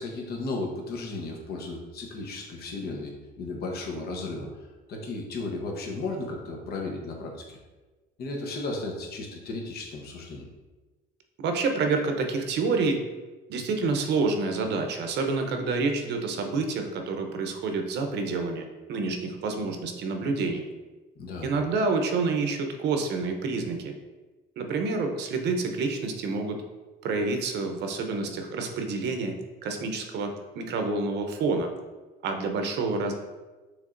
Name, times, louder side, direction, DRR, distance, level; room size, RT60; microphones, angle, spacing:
voice 1, 0.0-4.5 4.9-7.6 8.2-10.5 21.2-21.5, left 2 dB, 55° left, 1 dB, 1.0 m, -34 dB
voice 2, 11.4-13.0 13.5-20.6 21.4-24.0 24.6-26.6 27.0-31.7 32.2-33.1, right 4 dB, 65° right, 4 dB, 0.7 m, -28 dB
6.5 x 3.1 x 2.5 m, 1.2 s
cardioid pair, 135°, 19 cm